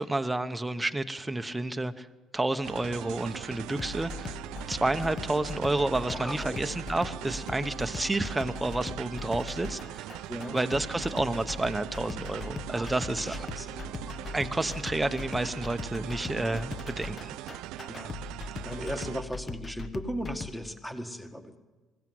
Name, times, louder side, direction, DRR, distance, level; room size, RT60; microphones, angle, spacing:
voice 1, 0.0-2.1 2.3-4.4 4.7-10.1 10.5-13.5 14.3-17.4, right 2 dB, 10° right, 8 dB, 0.9 m, -30 dB
sound 1, 2.6-19.2, right 14 dB, 85° right, 0.5 m, -41 dB
sound 2, 3.8-20.5, left 4 dB, 30° left, 0.9 m, -40 dB
voice 2, 6.1-6.6 10.3-10.6 12.7-13.8 17.9-18.1 18.6-21.6, equal, 5° left, 6 dB, 1.7 m, -37 dB
21.0 x 16.5 x 7.8 m, 1.2 s
cardioid pair, 120°, 0 cm